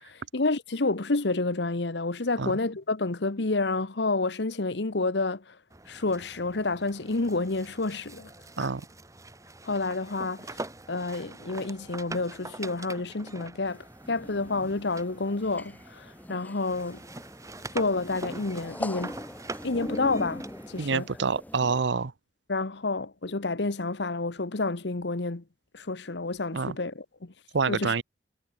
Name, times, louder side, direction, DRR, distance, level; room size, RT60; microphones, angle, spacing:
voice 1, 0.0-5.6 5.9-8.3 8.6-8.7 9.6-10.6 10.9-17.0 17.7-19.2 19.6-21.1 22.5-25.4 25.7-27.3 27.7-27.9, left 3 dB, 70° left, 1.2 m, -29 dB
sound 1, 5.7-16.3 16.6-20.9, right 2 dB, 20° right, 2.0 m, -44 dB
sound 2, 13.7-21.8, left 1 dB, 10° left, 0.7 m, -41 dB
voice 2, 20.8-22.1 26.5-26.8 27.5-28.0, right 4 dB, 80° right, 0.8 m, -27 dB
head